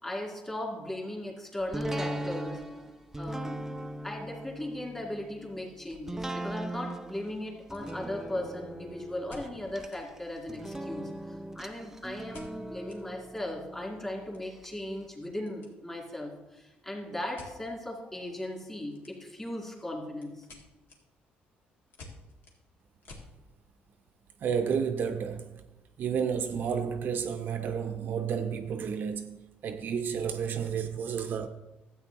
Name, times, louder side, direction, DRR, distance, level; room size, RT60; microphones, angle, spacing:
voice 1, 0.0-2.6 3.2-3.6 4.0-20.5, left 1 dB, 15° left, 2.5 m, -38 dB
sound 1, 1.7-14.7 15.1-15.2, right 1 dB, 10° right, 0.4 m, -39 dB
sound 2, 7.6-8.5 9.3-10.0 10.4-11.1 12.3-13.0 13.4-13.5 13.7-15.7 16.0-16.3 17.3-17.6 18.9-19.4 19.8-23.3, left 2 dB, 65° left, 2.1 m, -52 dB
voice 2, 24.4-25.6 26.0-31.5, right 7 dB, 55° right, 0.6 m, -31 dB
12.5 x 8.4 x 2.9 m
cardioid pair, 115°, 4 cm